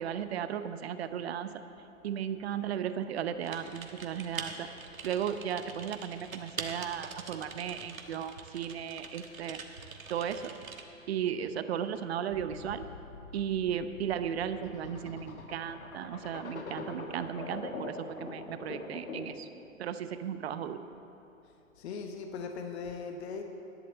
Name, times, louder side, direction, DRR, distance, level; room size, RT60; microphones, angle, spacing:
voice 1, 0.0-1.5 2.0-4.7 5.0-9.6 10.1-10.5 11.1-12.9 13.3-19.5 19.8-20.8, right 9 dB, 50° right, 11 dB, 0.8 m, -35 dB
Typing, 3.4-10.8, right 5 dB, 80° right, 1.4 m, -44 dB
sound 1, 12.3-19.5, left 3 dB, 85° left, 1.5 m, -43 dB
voice 2, 21.8-23.4, left 5 dB, 50° left, 4 dB, 1.1 m, -39 dB
11.0 x 7.5 x 7.8 m, 2.8 s
hypercardioid pair, 130°, 41 cm